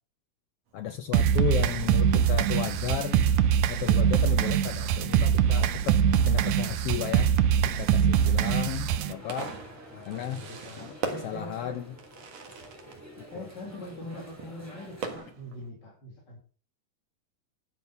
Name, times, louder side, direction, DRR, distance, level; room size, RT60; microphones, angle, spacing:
voice 1, 0.7-3.3 3.7-9.6 10.1-10.4 10.8-10.9 11.2-12.0 13.2-13.5, left 9 dB, 80° left, 9 dB, 1.3 m, -34 dB
Fireworks, 0.7-15.7, right 5 dB, 60° right, 2.7 m, -44 dB
sound 1, 1.1-9.1, right 9 dB, 75° right, 2.1 m, -23 dB
sound 2, 8.9-15.2, equal, 5° right, 2.7 m, -49 dB
voice 2, 9.9-11.8 13.3-16.4, left 1 dB, 35° left, -3 dB, 3.1 m, -42 dB
12.0 x 7.1 x 5.7 m, 0.42 s
omnidirectional pair, 3.4 m